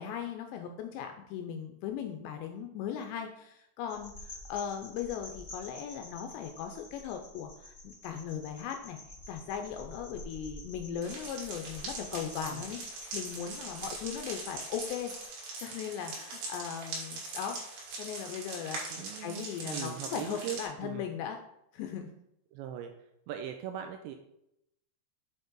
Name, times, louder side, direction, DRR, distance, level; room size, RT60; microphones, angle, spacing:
voice 1, 0.0-9.0 9.3-15.1 15.6-21.4 21.7-22.1, left 8 dB, 85° left, 5 dB, 2.5 m, -38 dB
sound 1, 3.9-15.3, left 2 dB, 20° left, 1.2 m, -49 dB
sound 2, 11.0-20.6, right 3 dB, 65° right, 3.9 m, -41 dB
voice 2, 18.9-21.1 22.5-22.9 23.3-24.2, right 10 dB, 85° right, 5 dB, 2.6 m, -40 dB
7.8 x 5.2 x 3.8 m, 0.81 s
omnidirectional pair, 5.4 m